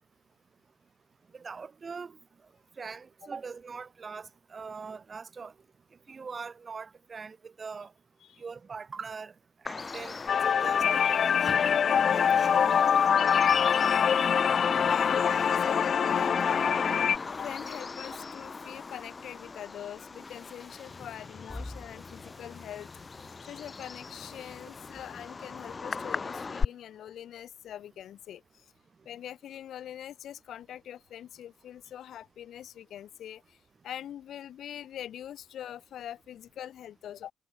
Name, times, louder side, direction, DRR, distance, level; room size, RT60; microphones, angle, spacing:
voice 1, 1.3-2.1 2.8-5.5 6.1-7.9 8.4-9.3 9.6-10.2 10.4-12.6, right 5 dB, 35° right, 3.2 m, -42 dB
Bird vocalization bird call bird song, 9.7-26.7, left 4 dB, 30° left, 2.4 m, -37 dB
sound 1, 9.8-25.8, left 1 dB, 10° left, 2.8 m, -54 dB
sound 2, 10.3-17.2, left 7 dB, 55° left, 0.4 m, -24 dB
voice 2, 13.2-13.5 14.8-16.8 17.3-28.7 29.0-33.6 33.8-37.3, left 10 dB, 70° left, 2.9 m, -43 dB
cardioid pair, 90°, 0 cm